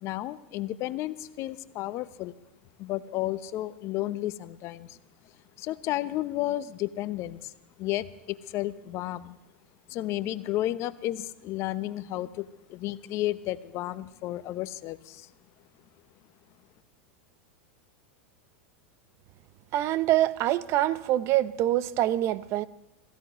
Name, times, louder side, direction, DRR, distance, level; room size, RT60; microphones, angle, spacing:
voice 1, 0.0-2.3 2.8-5.0 5.6-7.5 7.8-9.4 9.9-15.3, left 15 dB, 45° left, 14 dB, 0.8 m, -32 dB
voice 2, 19.7-22.7, right 14 dB, 45° right, 17 dB, 0.7 m, -25 dB
26.5 x 15.5 x 3.1 m, 0.96 s
hypercardioid pair, 100°, 6 cm